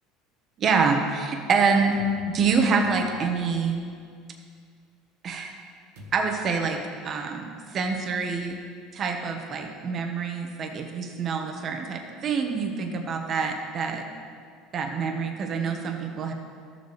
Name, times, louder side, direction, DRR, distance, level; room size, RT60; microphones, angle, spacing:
voice 1, 0.6-2.0 2.3-3.8 5.2-5.5 6.1-8.6 8.9-14.0 14.7-16.3, right 5 dB, 45° right, 3 dB, 1.1 m, -26 dB
sound 1, 1.9-3.4 6.0-6.5, left 2 dB, 85° right, 1.5 m, -46 dB
13.5 x 7.0 x 3.3 m, 2.2 s
supercardioid pair, 100°, 0 cm